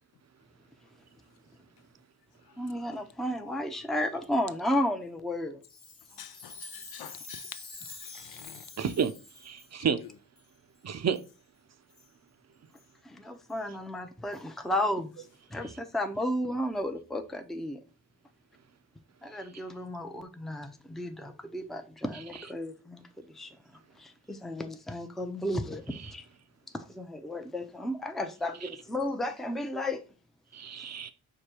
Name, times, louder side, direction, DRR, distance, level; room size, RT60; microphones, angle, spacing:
voice 1, 2.6-5.6 13.0-15.2 15.5-17.8 19.2-23.6 24.0-26.3 26.7-30.0, left 1 dB, ahead, 0.5 m, -33 dB
Chime, 5.6-9.7 10.4-10.5 11.1-11.3 11.9-12.1 12.8-12.9 13.5-13.6 14.3-14.4, left 3 dB, 35° left, 1.3 m, -47 dB
voice 2, 6.2-7.6 8.0-8.6 10.0-10.1, left 11 dB, 75° left, 0.5 m, -47 dB
voice 3, 8.8-9.1 9.4-10.0 10.8-11.2 28.6-28.7 30.5-31.1, right 7 dB, 45° right, 0.6 m, -30 dB
4.9 x 2.2 x 4.4 m
cardioid pair, 50°, 37 cm